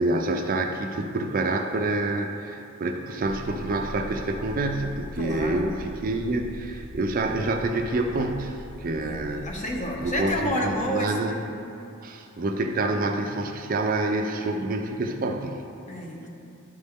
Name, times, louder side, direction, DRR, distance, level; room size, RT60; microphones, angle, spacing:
voice 1, 0.0-9.5 10.0-11.4 12.0-15.6, right 2 dB, 40° right, 4 dB, 0.4 m, -27 dB
sound 1, 3.2-10.5, equal, 60° left, 1.1 m, -41 dB
voice 2, 5.2-5.7 9.0-9.2 9.4-11.6 15.9-16.3, equal, 35° left, 0 dB, 0.9 m, -30 dB
11.5 x 4.1 x 3.5 m, 2.7 s
head